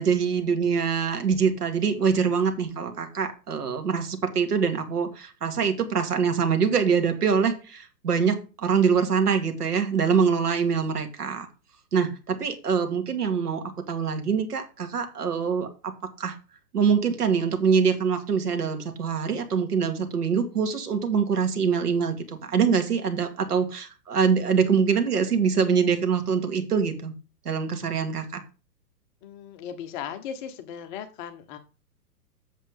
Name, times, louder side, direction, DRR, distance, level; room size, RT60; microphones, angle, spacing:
voice 1, 0.0-11.5 11.9-15.9 16.2-16.4 16.7-27.1 27.5-28.4, right 6 dB, 70° right, 7 dB, 2.3 m, -24 dB
voice 2, 29.2-31.6, left 8 dB, 30° left, 8 dB, 1.1 m, -37 dB
8.2 x 7.3 x 3.6 m, 0.32 s
figure-of-eight pair, 125°, 49 cm